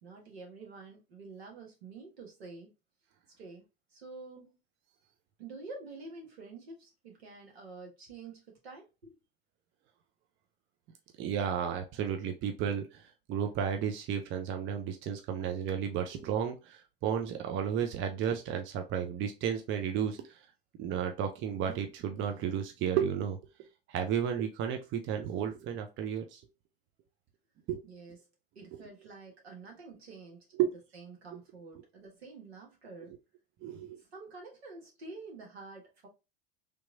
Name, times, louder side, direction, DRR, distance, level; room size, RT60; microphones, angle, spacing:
voice 1, 0.0-2.7 3.4-3.6 3.9-4.6 5.4-9.2 27.8-28.2 28.5-30.4 30.9-33.2 34.0-36.1, right 3 dB, 85° right, 1.5 m, -48 dB
voice 2, 11.2-13.0 13.3-20.3 20.8-23.4 23.9-26.4 27.7-27.8 28.7-28.8 30.6-30.7 33.6-34.0, right 8 dB, 40° right, 0.7 m, -33 dB
3.4 x 3.0 x 2.6 m
hypercardioid pair, 90°, 31 cm